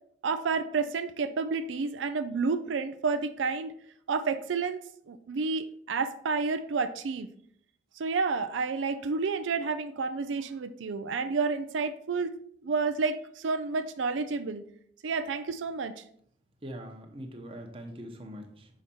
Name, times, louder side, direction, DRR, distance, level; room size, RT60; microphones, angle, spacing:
voice 1, 0.2-3.7 4.1-7.3 8.0-12.4 12.6-14.6 15.0-16.0, right 4 dB, 90° right, 9 dB, 0.4 m, -30 dB
voice 2, 16.6-18.7, equal, 30° right, 4 dB, 0.9 m, -42 dB
6.5 x 4.9 x 4.3 m, 0.65 s
head